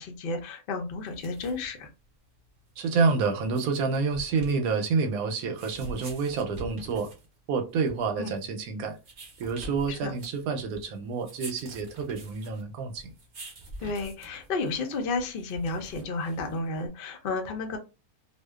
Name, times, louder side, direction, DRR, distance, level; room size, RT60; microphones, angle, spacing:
voice 1, 0.0-1.9 8.2-8.3 9.9-10.1 13.8-17.8, left 3 dB, 75° left, 0.4 m, -32 dB
sound 1, 1.0-16.9, right 1 dB, 50° right, 0.6 m, -47 dB
voice 2, 2.8-7.1 7.5-9.0 9.4-13.1, right 4 dB, 75° right, 1.0 m, -28 dB
2.5 x 2.1 x 2.3 m
omnidirectional pair, 1.6 m